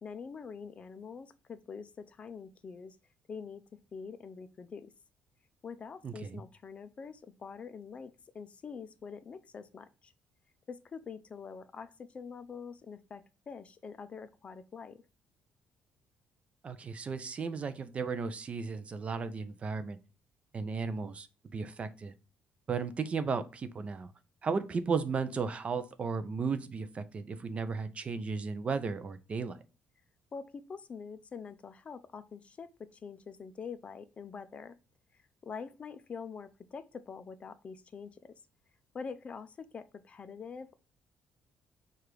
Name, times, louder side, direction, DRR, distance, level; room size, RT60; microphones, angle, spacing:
voice 1, 0.0-3.0 3.3-3.6 3.9-4.9 5.6-10.1 10.7-15.0 30.3-34.8 35.4-38.4 38.9-40.7, left 5 dB, 30° left, 0.4 m, -45 dB
voice 2, 6.0-6.4 16.6-20.0 20.5-21.3 21.5-22.1 22.7-24.1 24.4-29.6, right 5 dB, 30° right, 0.5 m, -35 dB
4.9 x 2.4 x 4.5 m
cardioid pair, 140°, 4 cm